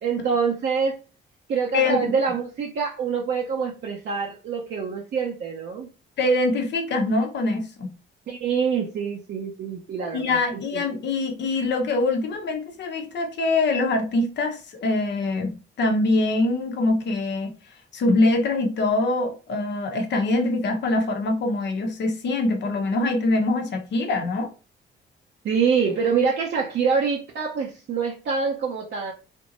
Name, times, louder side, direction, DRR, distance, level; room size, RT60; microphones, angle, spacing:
voice 1, 0.0-1.0 1.5-5.9 8.3-10.4 10.7-10.8 25.4-29.1, right 5 dB, 60° right, 0.7 m, -25 dB
voice 2, 1.7-2.1 6.2-7.9 10.1-17.5 17.9-24.5, left 2 dB, 65° left, 0.9 m, -24 dB
3.6 x 2.9 x 2.5 m
cardioid pair, 90°, 20 cm